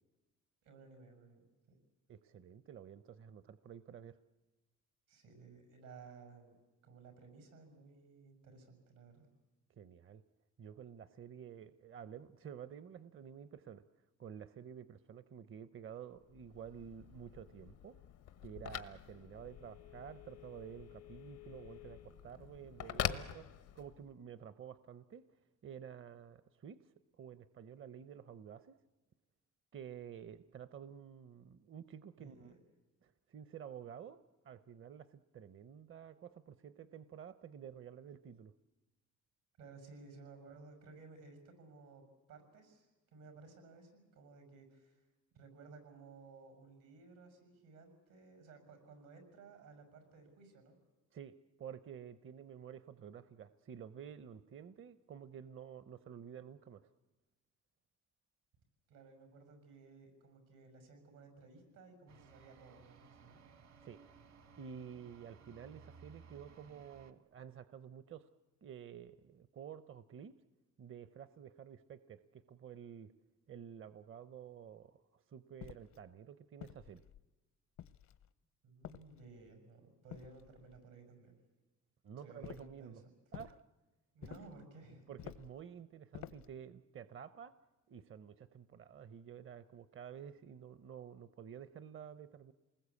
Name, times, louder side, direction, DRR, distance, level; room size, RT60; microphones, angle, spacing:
voice 1, 0.6-1.4 5.1-6.6 6.8-9.3 32.2-32.6 39.6-45.0 45.3-50.8 58.9-63.4 78.6-81.3 82.2-83.0 84.1-85.1, right 4 dB, 90° right, 6 dB, 6.5 m, -57 dB
voice 2, 2.1-4.2 9.7-10.2 10.6-13.8 14.2-18.0 18.4-23.5 23.7-25.2 25.6-28.8 29.7-32.5 33.0-34.2 34.4-38.5 51.1-56.9 63.8-64.0 64.6-68.3 68.6-70.3 70.8-73.1 73.5-77.0 82.0-83.0 83.3-83.6 85.1-87.5 87.9-92.5, right 8 dB, 45° right, 14 dB, 0.7 m, -51 dB
Telephone, 16.2-24.1, left 11 dB, 90° left, 1.1 m, -45 dB
sound 1, 62.1-67.1, right 5 dB, 65° right, 1.5 m, -60 dB
sound 2, 75.6-76.0 76.6-77.3 77.8-78.3 78.8-79.5 80.1-80.8 82.4-82.8 83.3-83.6 84.2-84.6 85.2-85.6 86.1-86.6, left 11 dB, 70° left, 0.8 m, -51 dB
27.5 x 20.0 x 8.4 m, 1.2 s
cardioid pair, 90°, 30 cm